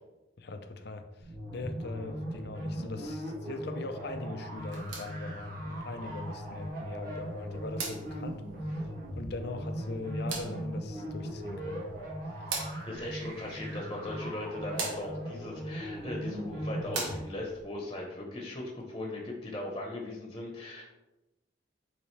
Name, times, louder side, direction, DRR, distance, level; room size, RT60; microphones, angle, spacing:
voice 1, 0.4-8.4 8.7-8.9 9.2-11.9 12.3-12.5, left 3 dB, 55° left, 8 dB, 0.5 m, -41 dB
sound 1, 1.2-17.2, equal, 45° right, 1.7 m, -39 dB
sound 2, 4.6-17.6, right 3 dB, 85° right, 1.3 m, -44 dB
voice 2, 12.8-20.8, left 1 dB, 25° left, 0 dB, 1.0 m, -38 dB
8.5 x 3.6 x 3.3 m, 1.0 s
head